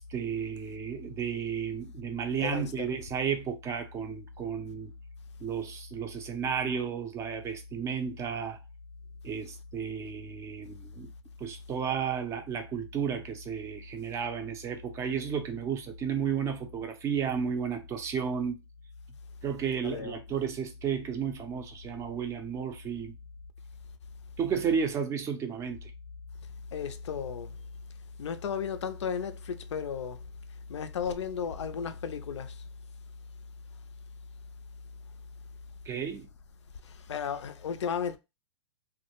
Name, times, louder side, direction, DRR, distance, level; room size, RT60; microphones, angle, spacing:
voice 1, 0.0-4.9 5.4-8.6 9.2-11.1 11.4-18.6 19.4-23.1 24.4-25.9 35.9-36.3, right 7 dB, 20° right, 0.4 m, -33 dB
voice 2, 2.4-2.9 19.8-20.2 26.7-27.6 28.2-30.2 30.7-32.7 36.8-38.2, left 7 dB, 80° left, 0.4 m, -34 dB
2.2 x 2.1 x 2.9 m
hypercardioid pair, 125°, 15 cm